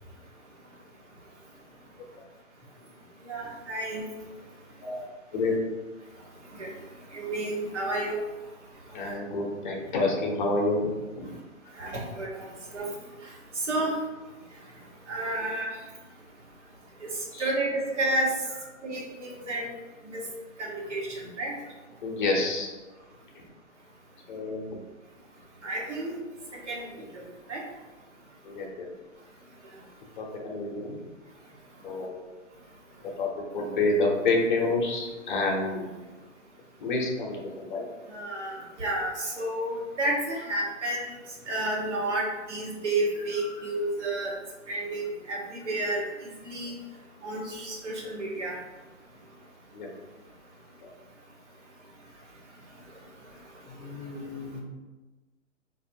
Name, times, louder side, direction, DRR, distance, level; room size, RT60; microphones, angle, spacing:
voice 1, 3.3-4.0 6.6-6.7 7.1-8.2 11.8-12.9 13.6-13.9 15.1-15.7 17.0-17.1 17.4-18.3 18.8-19.7 20.0-20.2 20.6-21.5 25.6-26.2 26.7-26.8 27.1-27.2 27.5-27.6 38.1-41.1 41.5-44.3 44.7-46.0 46.4-46.7 47.2-48.5, right 1 dB, 65° right, -3 dB, 1.3 m, -31 dB
voice 2, 5.3-5.7 8.9-11.3 17.3-17.5 22.0-22.7 23.4-23.5 24.3-24.6 28.4-28.9 30.2-31.0 31.8-32.2 33.0-35.9 36.8-37.8 43.4-43.6 49.7-49.9 50.8-50.9 53.7-54.6, left 2 dB, 40° left, 0 dB, 0.7 m, -29 dB
4.2 x 2.6 x 2.7 m, 1.2 s
figure-of-eight pair, 130°, 38 cm